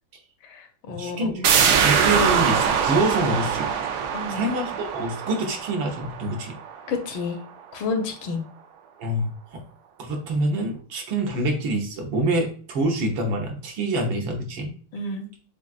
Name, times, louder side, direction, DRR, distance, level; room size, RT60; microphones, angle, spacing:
voice 1, 0.4-1.4 4.1-4.5 6.9-7.4 7.7-8.4 14.9-15.3, left 4 dB, 70° left, 5 dB, 1.5 m, -30 dB
voice 2, 1.0-3.7 4.3-6.5 9.0-9.6 10.0-14.7, right 2 dB, 70° right, 2 dB, 1.5 m, -26 dB
sound 1, 1.4-6.9 7.3-7.4, right 7 dB, 85° right, 0.9 m, -23 dB
7.0 x 2.4 x 2.3 m, 0.43 s
omnidirectional pair, 2.4 m